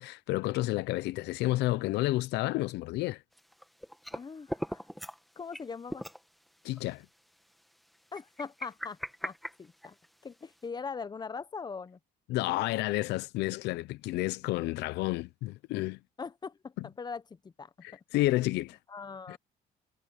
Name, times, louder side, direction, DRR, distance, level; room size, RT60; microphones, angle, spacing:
voice 1, 0.0-3.2 6.6-7.1 12.3-16.0 17.8-18.8 19.3-19.4, left 18 dB, 85° left, 0.6 m, -30 dB
sound 1, 3.4-4.2 4.5-5.2 5.5-5.6 5.9-6.2 6.8-6.9 8.1-10.2, equal, ahead, 1.6 m, -39 dB
voice 2, 4.1-4.9 5.4-6.0 8.1-10.0 10.2-12.0 16.2-17.9 18.1-18.2 18.9-19.4, left 5 dB, 25° left, 1.1 m, -41 dB
cardioid pair, 110°, 17 cm